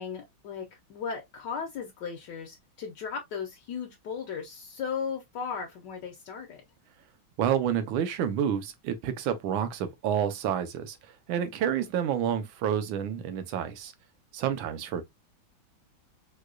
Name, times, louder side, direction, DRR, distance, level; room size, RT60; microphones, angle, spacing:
voice 1, 0.0-6.6, left 6 dB, 70° left, 1.2 m, -36 dB
voice 2, 7.4-11.0 11.3-13.9 14.3-15.0, right 9 dB, 80° right, 1.4 m, -29 dB
4.7 x 2.2 x 2.4 m
omnidirectional pair, 2.2 m